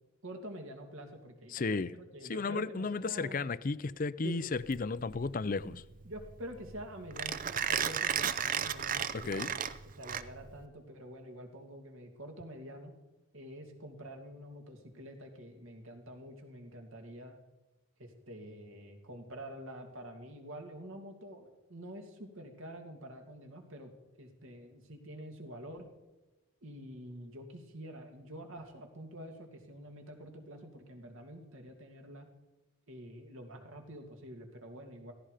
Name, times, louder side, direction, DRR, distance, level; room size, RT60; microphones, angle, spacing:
voice 1, 0.2-3.5 4.2-4.4 5.7-9.6 10.0-12.9 13.3-17.4 18.0-23.9 24.2-25.9 26.6-32.3 32.9-35.1, equal, 70° right, 2.6 m, -47 dB
voice 2, 1.5-1.9 2.3-5.8 9.1-9.5, left 4 dB, 40° left, 0.5 m, -34 dB
Mechanisms, 4.6-10.7, right 8 dB, 40° right, 0.6 m, -34 dB
16.0 x 15.5 x 5.0 m
head